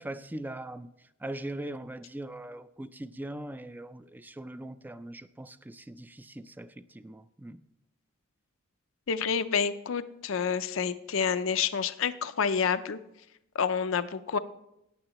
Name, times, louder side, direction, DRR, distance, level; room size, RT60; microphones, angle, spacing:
voice 1, 0.0-7.6, right 1 dB, 10° right, 13 dB, 0.4 m, -41 dB
voice 2, 9.1-13.0 13.5-14.4, left 6 dB, 70° left, 11 dB, 0.5 m, -28 dB
14.0 x 9.7 x 3.0 m, 0.85 s
head